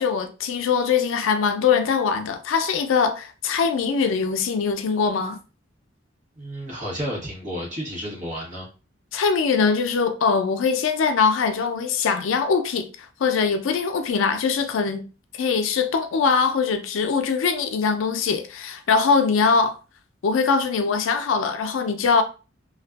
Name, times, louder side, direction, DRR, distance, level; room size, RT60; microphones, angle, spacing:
voice 1, 0.0-5.4 9.1-12.9 13.2-15.0 15.4-19.8 20.2-22.2, left 5 dB, 85° left, 0.4 m, -22 dB
voice 2, 6.4-8.7, equal, 40° right, 1.1 m, -31 dB
2.5 x 2.3 x 2.3 m
head